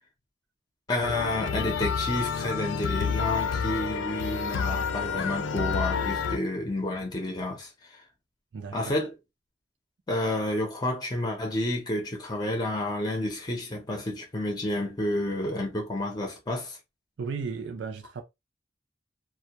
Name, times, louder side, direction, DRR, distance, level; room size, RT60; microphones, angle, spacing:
voice 1, 0.9-8.0 8.7-9.1 10.1-16.8, left 1 dB, 20° left, 0.6 m, -30 dB
sound 1, 1.0-6.4, left 6 dB, 75° left, 0.4 m, -29 dB
voice 2, 17.2-18.2, right 5 dB, 70° right, 0.4 m, -34 dB
2.1 x 2.1 x 2.8 m
head